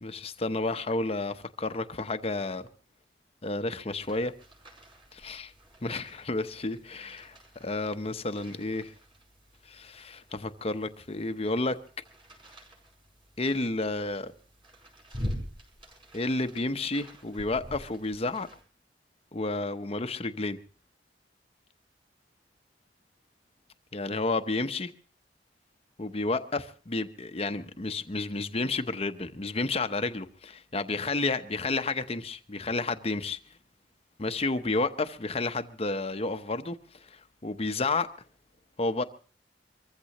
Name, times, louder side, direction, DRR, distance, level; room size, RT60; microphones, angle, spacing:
voice 1, 0.0-2.7 3.4-4.3 5.1-5.5 5.8-8.9 9.6-11.8 13.4-14.3 16.1-18.5 19.3-20.6 23.9-24.9 26.0-33.4 34.2-38.1 38.8-39.0, left 3 dB, 35° left, 0.9 m, -31 dB
sound 1, 3.9-18.6, equal, 30° right, 5.3 m, -45 dB
24.5 x 15.0 x 3.0 m
head